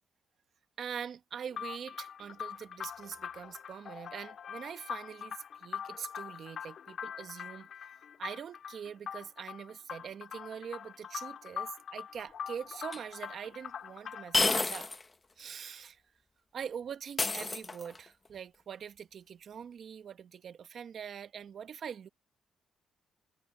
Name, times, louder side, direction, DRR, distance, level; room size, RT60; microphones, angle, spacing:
voice 1, 0.8-14.9 15.4-16.0 16.5-22.1, right 8 dB, 60° right, 1.5 m, -43 dB
sound 1, 1.5-14.5, left 8 dB, 60° left, 2.5 m, -43 dB
sound 2, 12.9-13.0 14.3-15.0 15.4-15.5 17.2-18.1, left 3 dB, 25° left, 1.2 m, -30 dB
cardioid pair, 90°, 0 cm